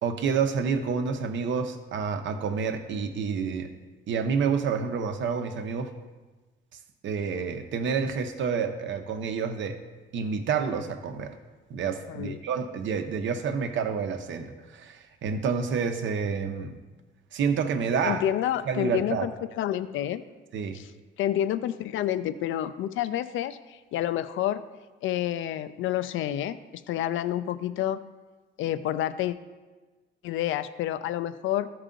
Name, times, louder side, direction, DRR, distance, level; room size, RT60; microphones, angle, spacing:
voice 1, 0.0-3.7 4.1-5.9 7.0-9.8 10.1-11.3 11.7-16.7 17.3-18.2 18.7-19.3 20.5-20.8, right 6 dB, 70° right, 7 dB, 0.9 m, -28 dB
voice 2, 12.1-12.4 18.0-19.3 19.6-20.2 20.7-20.9 21.2-24.6 25.0-26.6 26.9-28.0 28.6-29.4 30.2-31.7, left 12 dB, 80° left, 13 dB, 0.5 m, -29 dB
13.5 x 4.8 x 3.8 m, 1.3 s
cardioid pair, 90°, 20 cm